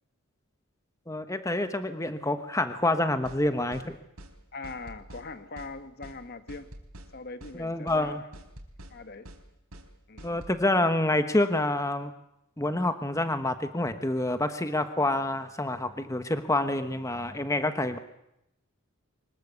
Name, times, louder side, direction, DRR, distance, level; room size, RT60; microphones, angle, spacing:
voice 1, 1.1-4.0 7.6-8.2 10.2-12.1 12.6-18.0, left 1 dB, 15° left, 9 dB, 1.2 m, -27 dB
sound 1, 3.2-3.4 3.7-3.9 4.2-4.3 4.6-5.3 5.6-5.7 6.0-6.2 6.5-7.1 7.4-7.6 7.9-8.0 8.3-8.9 9.2-9.4 9.7-9.9 10.2-10.6, right 1 dB, 80° right, 4.1 m, -46 dB
voice 2, 4.5-6.7 7.1-8.3 8.9-9.3 10.1-10.4, left 3 dB, 45° left, 10 dB, 1.3 m, -41 dB
24.5 x 20.5 x 8.2 m, 0.83 s
head